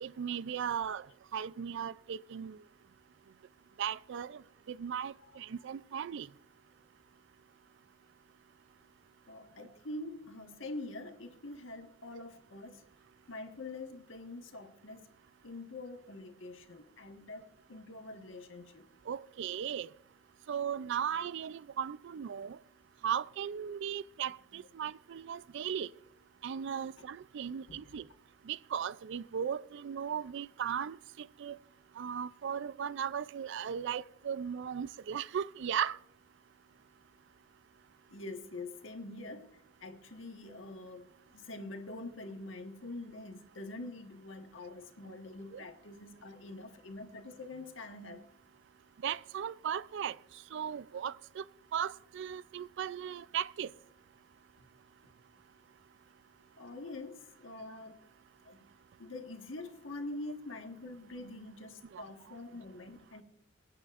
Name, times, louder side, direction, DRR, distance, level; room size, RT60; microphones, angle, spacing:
voice 1, 0.0-1.0 1.3-2.6 3.8-4.4 4.7-6.3 19.1-19.9 20.5-22.6 23.0-25.9 26.4-28.0 28.5-31.6 32.0-36.0 45.5-45.6 49.0-50.1 50.5-51.4 51.7-53.7 61.9-62.0, right 8 dB, 65° right, 0.4 m, -37 dB
voice 2, 9.3-12.8 13.3-15.1 15.4-17.4 17.7-18.8 27.7-28.0 38.1-48.2 54.6-54.7 56.6-58.0 58.4-58.7 59.0-63.2, left 2 dB, 70° left, 1.5 m, -45 dB
25.5 x 8.5 x 2.5 m
head